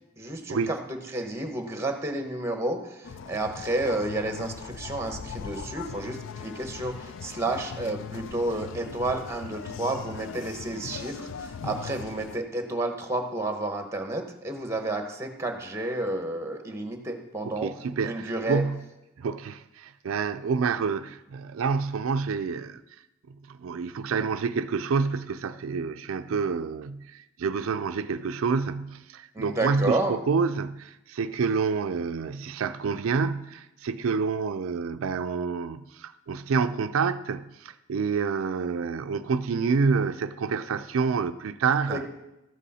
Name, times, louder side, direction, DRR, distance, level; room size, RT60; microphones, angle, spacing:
voice 1, 0.2-17.7 18.0-18.6 29.3-30.2 41.9-42.1, right 2 dB, 15° right, 1.1 m, -31 dB
sound 1, 3.0-12.4, left 6 dB, 65° left, 0.4 m, -40 dB
voice 2, 17.4-18.8 19.2-22.8 23.5-42.0, right 5 dB, 90° right, 0.4 m, -28 dB
13.0 x 8.2 x 4.2 m
head